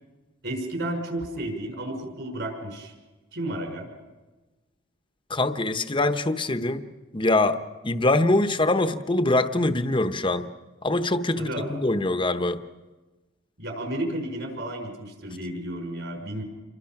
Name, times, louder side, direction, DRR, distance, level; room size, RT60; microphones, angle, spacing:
voice 1, 0.4-2.9 3.3-3.9 11.4-11.7 13.6-16.4, right 1 dB, 65° right, 3 dB, 5.7 m, -32 dB
voice 2, 5.3-6.8 7.1-10.5 10.8-12.6, left 2 dB, 25° left, 10 dB, 0.9 m, -23 dB
28.5 x 23.0 x 5.9 m, 1.2 s
head